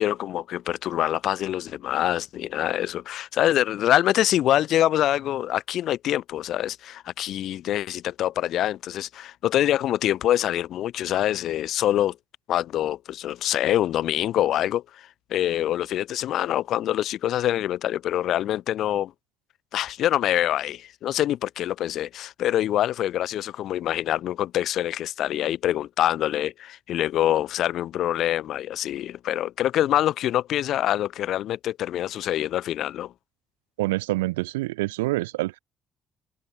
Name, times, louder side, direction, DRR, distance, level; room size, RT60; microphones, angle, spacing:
voice 1, 0.0-12.2 12.5-19.1 19.7-33.1, left 12 dB, 65° left, 3.0 m, -25 dB
voice 2, 33.8-35.6, right 19 dB, 85° right, 1.8 m, -26 dB
hypercardioid pair, 50°, 0 cm